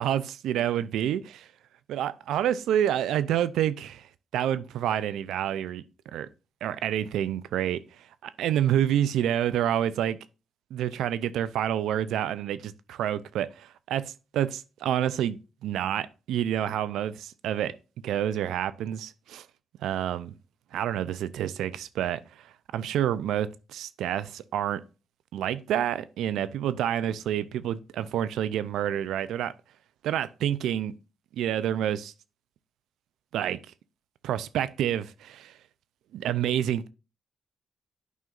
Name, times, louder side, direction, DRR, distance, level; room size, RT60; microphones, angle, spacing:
voice 1, 0.0-1.5 1.9-4.1 4.3-5.8 6.1-6.3 6.6-7.8 8.2-10.2 10.7-17.7 18.0-19.5 19.8-20.3 20.7-22.5 22.7-24.8 25.3-29.5 30.0-30.9 31.3-32.1 33.3-33.6 34.2-35.5 36.1-36.9, right 10 dB, 85° right, 0.5 m, -28 dB
9.3 x 5.6 x 2.5 m
supercardioid pair, 60°, 0 cm